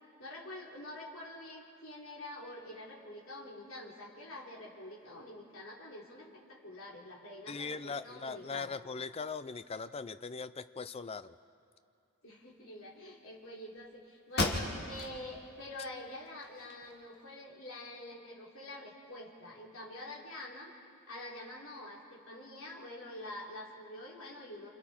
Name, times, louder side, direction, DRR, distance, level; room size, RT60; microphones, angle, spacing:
voice 1, 0.2-8.7 12.2-20.7 21.1-24.7, left 1 dB, 65° left, -4 dB, 3.6 m, -47 dB
voice 2, 7.5-11.4, left 4 dB, 25° left, 13 dB, 0.5 m, -40 dB
sound 1, 13.8-13.9 14.3-15.2 15.6-15.7 16.3-17.2, left 2 dB, 50° left, 2.0 m, -34 dB
27.5 x 27.0 x 4.4 m, 2.5 s
head